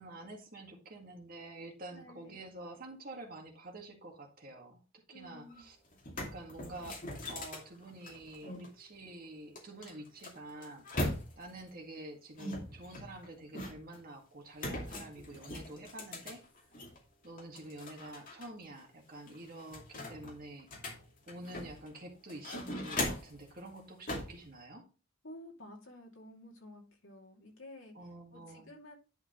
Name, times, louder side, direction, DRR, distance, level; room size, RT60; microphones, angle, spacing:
voice 1, 0.0-5.8 6.2-16.4 17.2-20.7 21.3-24.8 27.9-28.7, right 2 dB, 45° right, 1.9 m, -48 dB
voice 2, 1.9-2.4 5.1-5.6 25.2-27.9 28.3-28.9, left 1 dB, 65° left, 2.6 m, -52 dB
sound 1, 5.5-5.6 5.9-8.7 9.6-11.6 12.4-14.0 14.6-17.0 17.4-18.5 18.8-18.9 19.3-21.9 22.3-23.4 24.1-24.4, left 1 dB, 40° left, 2.5 m, -40 dB
10.5 x 5.7 x 3.1 m
head